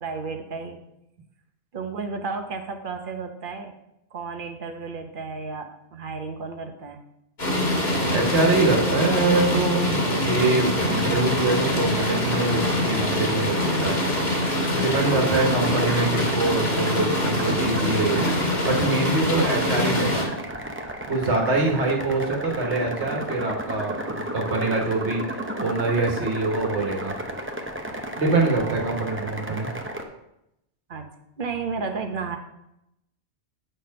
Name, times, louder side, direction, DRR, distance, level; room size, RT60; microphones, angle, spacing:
voice 1, 0.0-0.8 1.7-3.7 4.1-7.0 15.0-15.4 21.7-21.9 28.5-29.0 30.9-31.1 31.4-32.4, right 4 dB, 50° right, 6 dB, 0.9 m, -33 dB
sound 1, 7.4-20.2, left 1 dB, 65° left, 2.0 m, -24 dB
voice 2, 8.1-13.9 14.7-18.3 18.6-20.3 21.1-25.2 25.6-27.1 28.2-29.7, right 3 dB, 75° right, 0 dB, 1.6 m, -24 dB
sound 2, 10.8-30.0, right 1 dB, 15° right, 0.5 m, -34 dB
7.8 x 4.3 x 5.2 m, 0.85 s
omnidirectional pair, 1.2 m